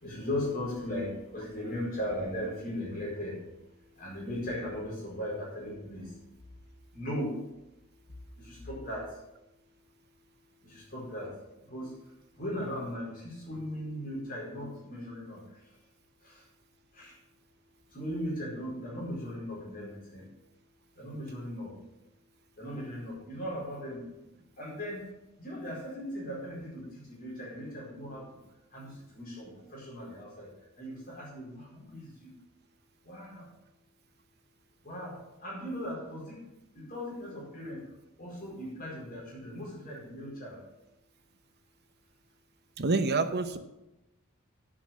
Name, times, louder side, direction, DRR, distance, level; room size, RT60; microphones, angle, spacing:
voice 1, 0.0-3.4 4.0-6.0 6.9-7.3 8.7-9.1 10.9-11.3 11.7-11.9 12.4-13.2 13.5-15.4 17.0-17.1 17.9-20.2 21.0-21.7 22.6-24.0 24.6-25.0 25.4-26.8 27.1-28.2 28.7-30.5 30.8-32.3 33.1-33.4 34.8-35.1 35.4-36.4 36.8-37.8 38.2-40.6, left 1 dB, 40° left, -4 dB, 4.7 m, -37 dB
voice 2, 42.8-43.6, right 3 dB, 50° right, 9 dB, 0.8 m, -27 dB
9.8 x 7.0 x 7.4 m, 0.94 s
head